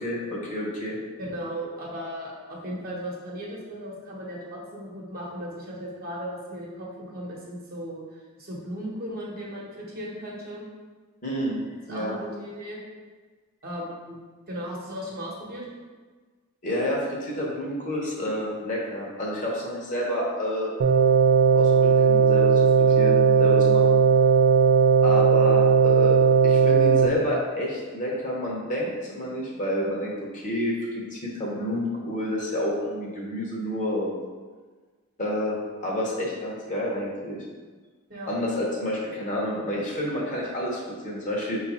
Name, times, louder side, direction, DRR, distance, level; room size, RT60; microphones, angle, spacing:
voice 1, 0.0-1.0 11.2-11.6 11.9-12.2 16.6-20.7 21.5-23.8 25.0-26.2 26.4-34.2 35.2-37.4 38.2-41.6, equal, 35° left, -3 dB, 0.8 m, -29 dB
voice 2, 1.2-10.7 11.9-12.8 13.6-14.2 14.5-15.7 38.1-38.3, equal, 45° right, -4 dB, 1.0 m, -36 dB
sound 1, 20.8-27.1, right 6 dB, 90° right, 0.4 m, -18 dB
5.1 x 2.4 x 4.1 m, 1.4 s
head